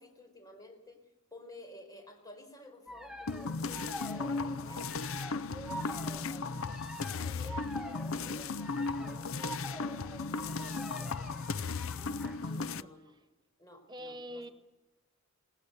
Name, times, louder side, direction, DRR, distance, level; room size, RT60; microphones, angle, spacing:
voice 1, 0.0-5.0 5.7-11.5 12.5-13.2 13.6-14.5, left 1 dB, 20° left, 4 dB, 4.9 m, -54 dB
sound 1, 2.9-12.5, right 1 dB, 5° right, 1.3 m, -46 dB
sound 2, 3.3-12.8, left 4 dB, 75° left, 0.6 m, -36 dB
voice 2, 10.6-11.1 12.0-12.9 13.9-14.5, equal, 20° right, 10 dB, 0.9 m, -48 dB
20.5 x 19.0 x 6.8 m, 1.0 s
head